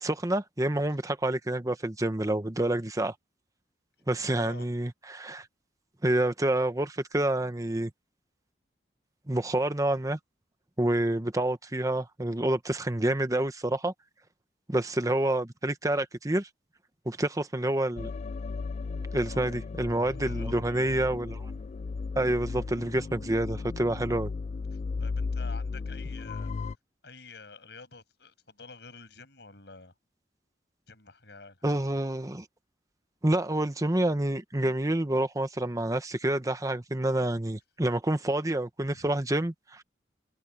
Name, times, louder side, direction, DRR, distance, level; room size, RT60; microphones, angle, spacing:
voice 1, 0.0-3.1 4.1-5.5 6.0-7.9 9.3-10.2 10.8-13.9 14.7-16.5 17.1-18.1 19.1-21.4 22.2-24.3 31.6-32.4 33.2-39.8, right 1 dB, 20° right, 1.0 m, -28 dB
voice 2, 4.4-4.7 19.1-19.4 20.2-20.9 24.7-26.5 27.0-29.9 30.9-31.9 38.9-39.1, left 3 dB, 70° left, 6.8 m, -49 dB
sound 1, 18.0-26.7, left 4 dB, 40° left, 0.3 m, -35 dB
head